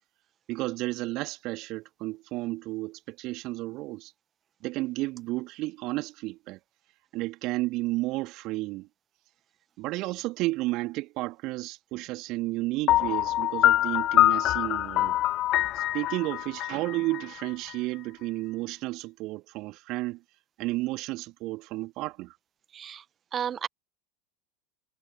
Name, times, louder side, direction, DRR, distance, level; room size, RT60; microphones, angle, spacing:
voice 1, 0.5-4.1 4.6-6.6 7.1-8.9 9.8-15.2 15.7-20.2 20.6-22.3, right 20 dB, 45° right, 2.9 m, -32 dB
Piano, 12.9-17.7, left 15 dB, 40° left, 0.3 m, -24 dB
voice 2, 22.7-23.0 23.3-23.7, right 9 dB, 30° right, 1.5 m, -32 dB
figure-of-eight pair, 80°, 0 cm